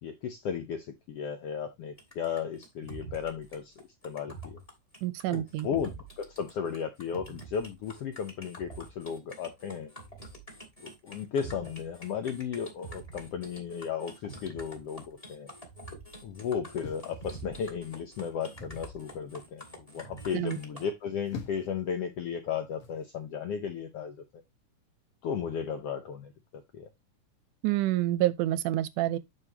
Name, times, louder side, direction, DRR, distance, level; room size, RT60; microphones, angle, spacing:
voice 1, 0.0-3.7 4.0-4.6 5.3-9.9 10.8-15.5 16.2-24.4 25.2-26.9, left 7 dB, 75° left, 1.4 m, -35 dB
sound 1, 2.0-20.8, right 2 dB, 15° left, 1.7 m, -46 dB
voice 2, 5.0-5.7 20.3-20.6 27.6-29.2, right 14 dB, 80° right, 2.2 m, -28 dB
sound 2, 16.8-17.8 18.6-19.0 20.9-21.8 22.8-23.1, left 4 dB, 50° left, 2.2 m, -45 dB
9.8 x 5.3 x 3.0 m
omnidirectional pair, 3.8 m